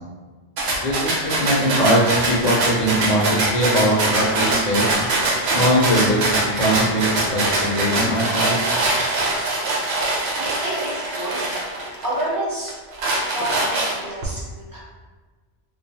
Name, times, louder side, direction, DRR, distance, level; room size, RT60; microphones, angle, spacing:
sound 1, 0.6-12.2 12.7-14.2, right 2 dB, 80° right, 0.8 m, -23 dB
voice 1, 0.8-4.9 5.5-8.6, equal, 50° left, -4 dB, 0.7 m, -21 dB
voice 2, 10.4-10.8 11.1-11.4 12.0-12.7 13.3-14.8, right 1 dB, 25° right, -7 dB, 0.6 m, -28 dB
2.3 x 2.2 x 2.7 m, 1.3 s
omnidirectional pair, 1.1 m